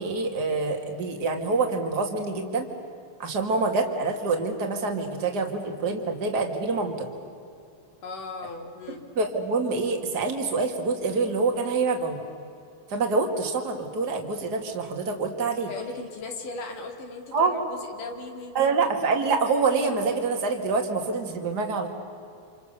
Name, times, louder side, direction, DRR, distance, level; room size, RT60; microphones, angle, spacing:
voice 1, 0.0-2.7 3.2-7.0 9.1-12.2 12.9-15.7 17.3-17.6 18.5-21.9, right 4 dB, 30° right, 4 dB, 2.7 m, -26 dB
voice 2, 8.0-9.0 15.7-18.8, left 3 dB, 80° left, 3 dB, 4.2 m, -38 dB
29.0 x 27.5 x 6.9 m, 2.5 s
omnidirectional pair, 3.7 m